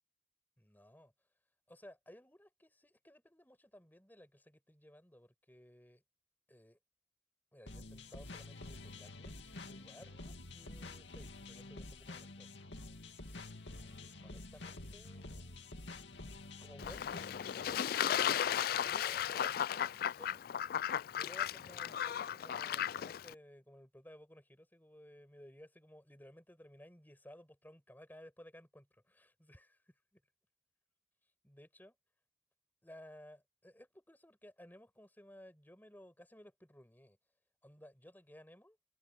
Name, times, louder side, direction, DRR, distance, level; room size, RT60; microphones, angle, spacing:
voice 1, 0.6-1.1 1.7-6.0 6.5-6.8 7.5-12.5 13.7-15.6 16.6-17.4 17.6-20.4 21.2-29.8 31.4-32.0 32.8-37.2 37.6-38.8, equal, 10° left, 6.4 m, -58 dB
sound 1, 7.7-17.8, left 2 dB, 85° left, 2.3 m, -49 dB
Fowl / Bird / Water, 16.8-23.3, left 9 dB, 55° left, 0.3 m, -35 dB
head